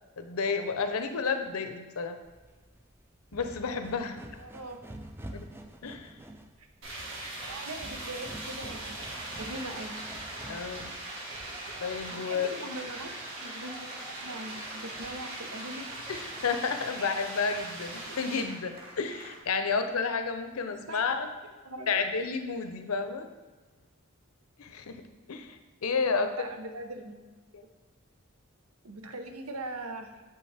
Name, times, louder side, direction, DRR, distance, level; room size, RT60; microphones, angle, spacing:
voice 1, 0.2-2.2 3.3-4.2 5.3-5.5 5.8-6.1 10.5-11.3 11.8-12.5 16.1-21.3 21.9-23.3 24.6-25.0 25.3-26.5 27.5-27.6, left 5 dB, 85° left, 8 dB, 0.6 m, -31 dB
sound 1, 2.3-11.2, right 1 dB, 10° right, 0.4 m, -47 dB
voice 2, 4.4-4.8 6.6-6.7 7.5-9.0 9.4-9.9 12.1-13.1 13.4-15.9 20.7-21.3 21.6-22.1 26.2-27.4 28.8-30.2, right 2 dB, 90° right, 6 dB, 0.8 m, -41 dB
sound 2, 6.8-18.4, right 2 dB, 60° right, 1.8 m, -41 dB
sound 3, 9.0-19.4, right 1 dB, 25° right, 1.1 m, -46 dB
6.9 x 5.4 x 3.4 m, 1.3 s
head